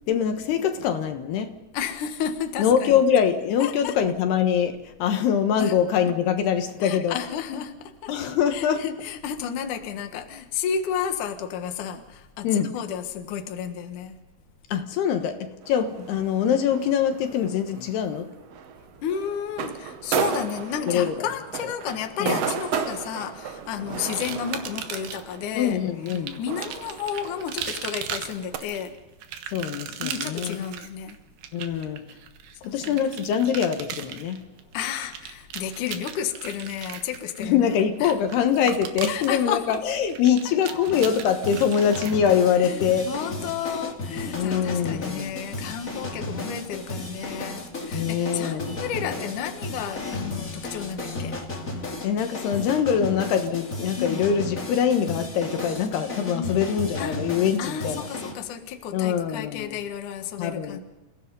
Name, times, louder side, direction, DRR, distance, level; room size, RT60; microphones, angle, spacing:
voice 1, 0.1-1.5 2.6-7.2 7.5-7.6 8.1-8.8 12.4-12.7 14.7-18.3 20.9-21.3 21.6-21.7 22.2-22.5 25.5-26.4 29.5-30.6 31.5-32.0 32.6-34.4 37.4-43.1 44.4-45.3 47.9-48.8 52.0-58.1 58.9-59.8 60.4-60.8, left 8 dB, 75° left, 3.4 m, -24 dB
voice 2, 1.7-3.0 3.6-3.9 5.6-5.8 6.8-8.1 8.5-14.2 19.0-25.8 26.4-29.0 30.0-31.2 32.6-33.1 34.7-38.2 39.1-39.8 42.6-51.4 53.0-53.2 54.0-54.2 56.3-56.6 57.0-57.2 57.6-60.8, left 8 dB, 60° left, 2.6 m, -32 dB
sound 1, 15.6-28.6, right 8 dB, 90° right, 1.4 m, -34 dB
sound 2, 24.1-25.4 26.1-42.9, right 9 dB, 70° right, 3.3 m, -38 dB
sound 3, 40.9-58.3, left 2 dB, 25° left, 2.2 m, -34 dB
29.0 x 17.0 x 5.4 m
omnidirectional pair, 4.7 m